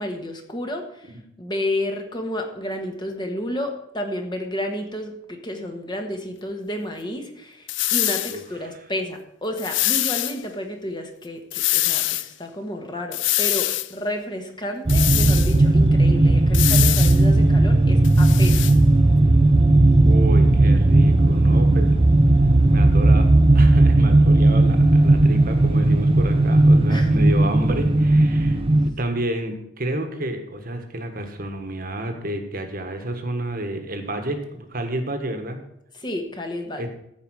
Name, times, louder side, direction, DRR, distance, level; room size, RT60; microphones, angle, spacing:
voice 1, 0.0-18.7 26.9-27.1 35.9-36.9, left 1 dB, 20° left, 4 dB, 1.3 m, -31 dB
sound 1, 7.7-8.4 9.6-10.4 11.5-12.3 13.1-13.9 14.9-15.6 16.5-17.2 18.0-18.8, left 16 dB, 60° left, 0.4 m, -23 dB
sound 2, 14.9-28.9, right 2 dB, 25° right, 0.5 m, -16 dB
voice 2, 20.0-21.9 22.6-23.3 23.5-28.6 28.8-35.6 36.8-36.9, right 1 dB, 45° right, 6 dB, 1.4 m, -30 dB
14.5 x 4.9 x 6.3 m, 0.78 s
head